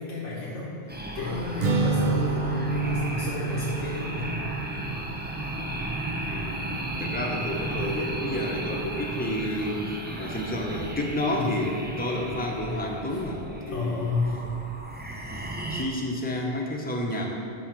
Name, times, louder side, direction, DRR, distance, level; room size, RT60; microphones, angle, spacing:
voice 1, 0.0-4.3 11.2-11.5 13.1-13.2 13.7-14.5, left 3 dB, 80° left, -6 dB, 1.3 m, -31 dB
sound 1, 0.9-15.8, right 1 dB, 15° right, 0.4 m, -35 dB
sound 2, 1.1-10.4, right 1 dB, 35° right, 1.1 m, -47 dB
Strum, 1.6-7.9, right 3 dB, 55° right, 0.6 m, -30 dB
voice 2, 6.3-6.7 7.0-9.8 10.2-14.2 15.3-17.2, left 1 dB, 10° left, -1 dB, 0.7 m, -30 dB
7.6 x 4.7 x 6.0 m, 2.5 s
omnidirectional pair, 1.2 m